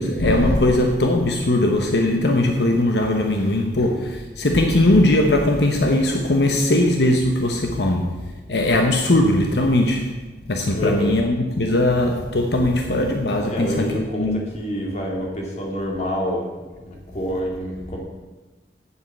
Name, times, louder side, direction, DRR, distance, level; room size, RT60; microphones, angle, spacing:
voice 1, 0.0-8.2 8.5-10.1 10.5-14.4, left 1 dB, 75° left, 1.0 m, -19 dB
voice 2, 10.7-11.2 13.5-16.5 16.8-18.0, equal, 40° left, 2.3 m, -27 dB
8.5 x 7.8 x 7.3 m
head